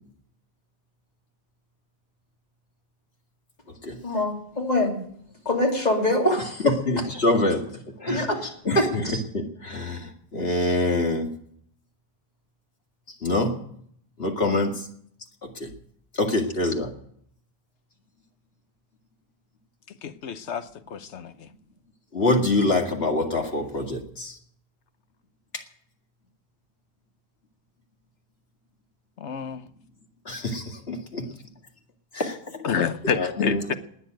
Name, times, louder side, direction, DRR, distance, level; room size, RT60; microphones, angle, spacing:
voice 1, 4.0-5.0 5.4-6.8 8.1-9.2, left 1 dB, 40° left, 2.9 m, -24 dB
voice 2, 6.6-7.6 8.0-8.3 8.6-11.3 13.2-13.6 14.2-14.8 15.4-15.7 16.1-16.9 22.1-24.4 30.3-31.3 32.1-33.7, left 2 dB, 65° left, 2.4 m, -25 dB
voice 3, 20.0-21.5 29.2-29.7 32.6-33.7, left 7 dB, 85° left, 1.2 m, -29 dB
19.5 x 7.3 x 9.1 m
omnidirectional pair, 1.1 m